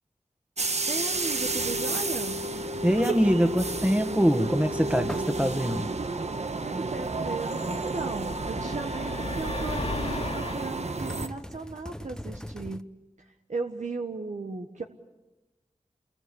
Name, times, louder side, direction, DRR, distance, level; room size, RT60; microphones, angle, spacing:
sound 1, 0.6-11.3, right 2 dB, 65° right, 1.2 m, -31 dB
voice 1, 0.9-2.5 6.6-12.9 13.2-14.8, right 3 dB, 85° right, 4 dB, 1.4 m, -36 dB
sound 2, 1.2-1.3 1.6-1.8 2.1-2.5 2.9-3.5 4.6-4.7 5.1-5.3 5.7-5.9 6.4-6.7 6.9-7.0 7.3-7.7 8.5-8.7 9.1-9.5 9.8-12.8, equal, 5° left, 0.8 m, -42 dB
voice 2, 2.8-5.9, equal, 10° right, 8 dB, 1.6 m, -24 dB
sound 3, 7.8-10.7, left 2 dB, 60° left, 2.5 m, -35 dB
28.5 x 21.0 x 8.4 m, 1.1 s
wide cardioid pair, 60°, 12 cm